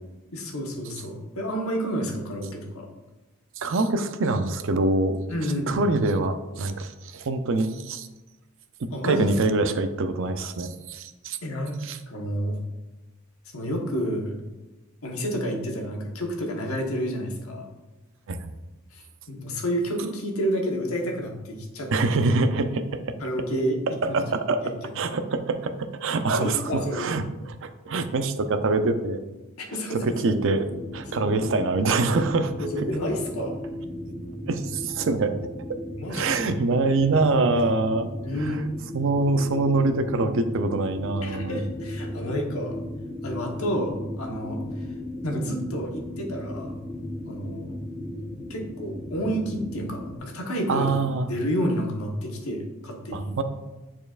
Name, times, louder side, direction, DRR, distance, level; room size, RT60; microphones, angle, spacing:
voice 1, 0.3-2.9 5.3-5.8 8.9-9.3 11.4-11.8 12.1-12.6 13.5-14.3 15.0-17.7 18.9-21.9 23.2-23.8 24.1-24.2 26.3-27.2 29.7-30.4 31.1-31.4 32.6-33.6 36.0-36.2 38.2-38.6 41.2-42.8 43.2-44.6 45.2-46.7 47.3-47.7 48.5-50.9 51.3-53.3, equal, 85° left, 1 dB, 1.2 m, -29 dB
voice 2, 3.6-8.1 8.8-11.4 11.8-12.0 18.3-18.5 21.9-23.0 24.0-29.2 29.9-30.7 30.9-32.9 34.5-35.3 36.1-38.1 38.4-38.6 38.9-41.6 50.7-51.3 53.1-53.4, right 3 dB, 60° right, 9 dB, 0.5 m, -25 dB
sound 1, 30.7-50.2, left 1 dB, 10° left, 1.1 m, -36 dB
8.9 x 4.4 x 2.4 m, 1.1 s
head